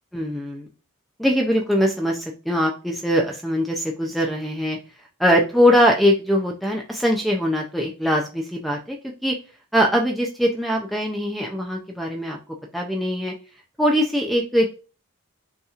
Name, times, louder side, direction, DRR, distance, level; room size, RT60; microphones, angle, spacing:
voice 1, 0.1-0.7 1.2-4.8 5.2-9.0 9.2-9.4 9.7-12.4 12.7-13.3 13.8-14.7, equal, ahead, 1 dB, 0.4 m, -21 dB
5.5 x 2.9 x 2.4 m, 0.33 s
head